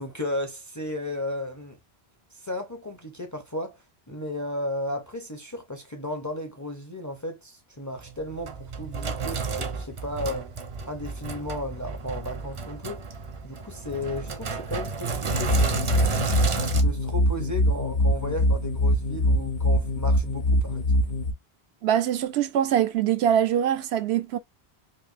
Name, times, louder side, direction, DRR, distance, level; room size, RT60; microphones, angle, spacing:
voice 1, 0.0-1.8 2.3-10.5 10.9-13.0 13.4-16.1 16.7-21.0, left 1 dB, 25° left, 0.5 m, -34 dB
Sink (filling or washing), 8.0-16.8, right 4 dB, 40° right, 0.5 m, -32 dB
sound 1, 15.3-21.3, equal, 75° left, 1.0 m, -23 dB
voice 2, 21.8-24.4, right 10 dB, 80° right, 0.8 m, -23 dB
4.0 x 2.5 x 2.5 m
omnidirectional pair, 1.1 m